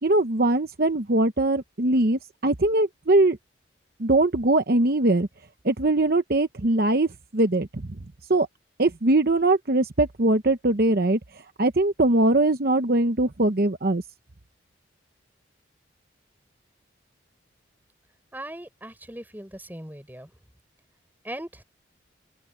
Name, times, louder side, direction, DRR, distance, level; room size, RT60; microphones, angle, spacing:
voice 1, 0.0-3.4 4.0-5.3 5.6-7.9 8.3-8.5 8.8-11.2 11.6-14.0, right 2 dB, 50° right, 0.9 m, -21 dB
voice 2, 18.3-20.3 21.2-21.6, right 1 dB, 10° right, 4.6 m, -39 dB
open air
head